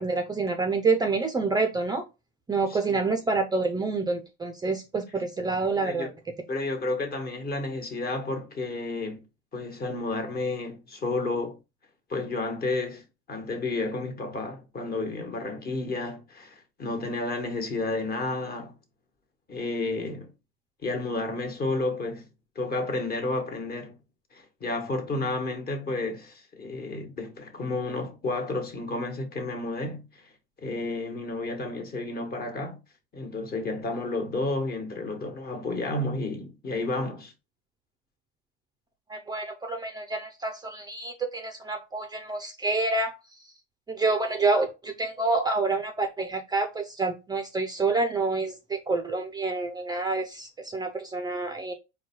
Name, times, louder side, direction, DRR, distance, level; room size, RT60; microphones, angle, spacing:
voice 1, 0.0-2.0 2.5-6.1 39.1-43.4 43.9-51.7, right 3 dB, 15° right, 0.5 m, -28 dB
voice 2, 2.7-3.0 5.7-6.1 6.5-9.2 9.5-11.6 12.1-13.0 13.3-18.7 19.5-20.3 20.8-22.3 22.5-23.9 24.3-30.0 30.6-32.8 33.1-37.3, left 2 dB, 30° left, 1.3 m, -31 dB
4.4 x 2.3 x 4.4 m
supercardioid pair, 110°, 30 cm